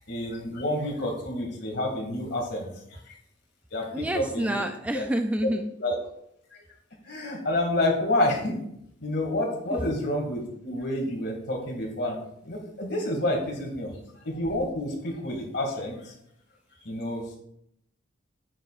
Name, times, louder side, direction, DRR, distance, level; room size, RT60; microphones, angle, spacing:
voice 1, 0.0-3.2 3.7-4.6 4.9-5.1 5.8-6.0 6.5-6.6 7.0-8.6 9.0-12.2 12.4-16.1 16.7-17.4, left 1 dB, 55° left, 0 dB, 2.2 m, -29 dB
voice 2, 3.9-5.7 9.7-9.8, right 1 dB, 5° right, 6 dB, 0.3 m, -28 dB
9.2 x 8.1 x 2.5 m, 0.74 s
head